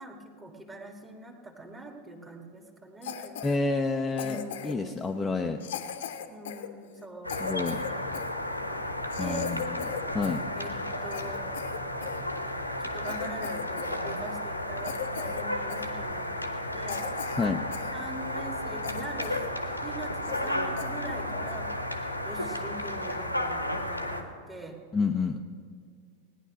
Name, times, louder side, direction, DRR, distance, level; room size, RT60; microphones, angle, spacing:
voice 1, 0.0-3.4 4.2-5.0 6.3-7.3 8.5-8.8 9.2-9.5 10.5-11.5 12.8-16.3 16.7-17.1 17.9-21.7 22.2-24.8, right 2 dB, 15° right, 4 dB, 1.6 m, -43 dB
Cough, 3.0-3.6 4.2-4.9 5.6-8.3 8.8-8.9 9.1-10.5 10.8-12.2 12.7-12.8 13.0-14.0 14.2-14.4 14.8-15.4 15.7-15.9 16.4-16.5 16.9-17.9 18.3-18.4 18.8-19.5 19.8-19.9 20.2-20.5 20.8-20.9 21.5-21.7, left 8 dB, 60° left, 0.9 m, -38 dB
voice 2, 3.4-5.6 7.4-7.8 9.2-9.8 10.1-10.4 17.4-17.6 24.9-25.4, left 4 dB, 10° left, 3 dB, 0.6 m, -29 dB
sound 1, 7.2-24.2, left 1 dB, 90° left, 1.1 m, -33 dB
17.5 x 10.0 x 6.1 m, 2.1 s
figure-of-eight pair, 90°, 0 cm